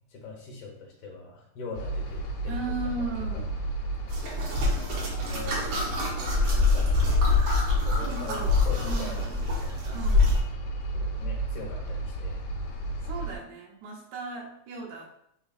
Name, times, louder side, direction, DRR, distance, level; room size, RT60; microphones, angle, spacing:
voice 1, 0.1-3.5 5.2-5.6 6.1-7.4 7.7-9.8 10.9-12.4, left 4 dB, 65° left, -1 dB, 1.6 m, -42 dB
sound 1, 1.7-13.4, right 2 dB, 85° left, 2.1 m, -33 dB
voice 2, 2.5-3.5 8.0-8.6 8.8-9.4 9.9-10.4 13.0-15.1, right 3 dB, 85° right, -2 dB, 2.5 m, -36 dB
sound 2, 4.1-10.4, left 3 dB, 60° right, 1.6 m, -25 dB
4.4 x 4.4 x 2.4 m, 0.76 s
omnidirectional pair, 3.5 m